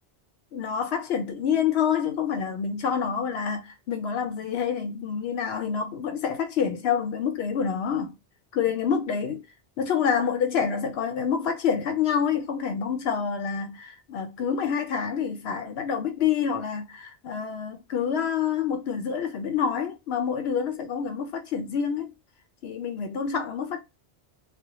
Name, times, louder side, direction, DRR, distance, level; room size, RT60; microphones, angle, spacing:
voice 1, 0.5-8.2 8.5-9.5 9.8-22.1 22.6-23.8, left 7 dB, 75° left, 0.8 m, -27 dB
2.1 x 2.1 x 2.8 m
omnidirectional pair, 1.1 m